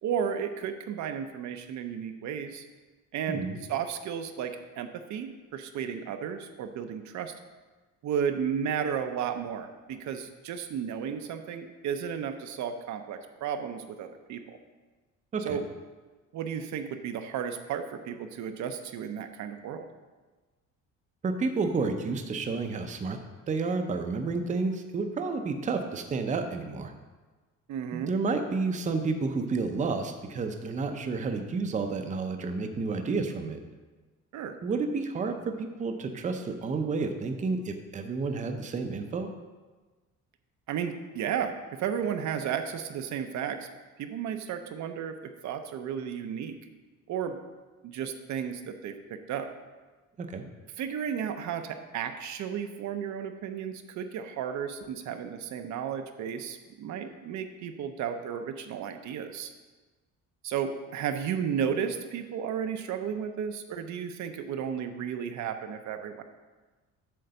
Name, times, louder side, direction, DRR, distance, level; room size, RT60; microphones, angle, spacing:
voice 1, 0.0-2.6 3.1-3.4 3.7-7.3 8.0-14.6 15.4-15.6 16.3-19.9 27.7-28.1 34.3-34.6 40.7-43.7 44.0-46.6 47.1-47.4 47.8-49.5 50.8-59.5 60.4-66.2, right 8 dB, 65° right, 7 dB, 0.6 m, -33 dB
voice 2, 3.3-3.6 15.3-15.6 21.2-23.2 23.5-26.9 27.9-33.6 34.6-39.3 50.2-50.4, right 4 dB, 25° right, 6 dB, 0.6 m, -30 dB
7.8 x 3.8 x 6.7 m, 1.3 s
cardioid pair, 140°, 31 cm